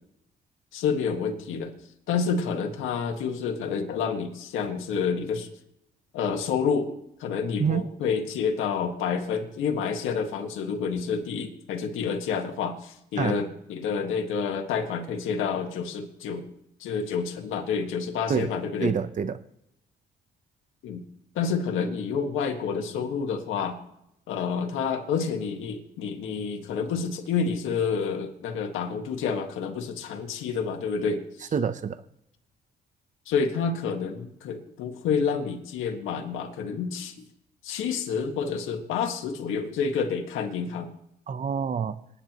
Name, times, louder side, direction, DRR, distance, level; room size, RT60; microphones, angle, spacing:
voice 1, 0.7-1.7 2.1-5.5 6.1-6.9 7.2-16.4 16.8-18.9 20.8-21.0 21.4-23.8 24.3-31.5 33.3-37.1 37.6-40.9, left 6 dB, 90° left, 3 dB, 1.8 m, -29 dB
voice 2, 18.8-19.4 31.5-32.0 41.3-42.0, right 6 dB, 40° right, 11 dB, 0.8 m, -27 dB
26.5 x 9.9 x 3.1 m, 0.77 s
cardioid pair, 90°, 20 cm